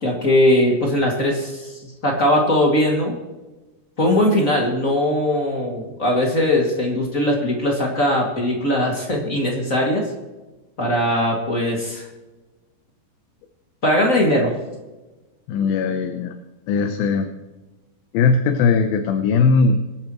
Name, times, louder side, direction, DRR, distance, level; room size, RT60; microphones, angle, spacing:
voice 1, 0.0-3.2 4.0-10.1 10.8-12.1 13.8-14.5, left 1 dB, 30° left, -1 dB, 1.9 m, -20 dB
voice 2, 15.5-16.3 16.7-17.3 18.1-19.8, left 5 dB, 80° left, 6 dB, 2.7 m, -19 dB
24.5 x 10.5 x 3.1 m, 1.2 s
omnidirectional pair, 4.3 m